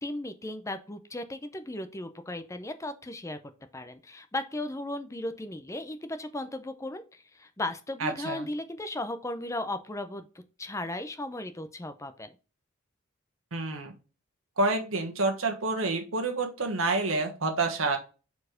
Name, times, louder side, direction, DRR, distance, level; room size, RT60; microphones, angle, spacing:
voice 1, 0.0-3.4 3.7-12.3, left 1 dB, 15° left, 9 dB, 0.5 m, -36 dB
voice 2, 8.0-8.5 13.5-13.9 14.6-18.0, right 3 dB, 80° right, 4 dB, 1.3 m, -28 dB
4.7 x 4.2 x 4.9 m, 0.33 s
head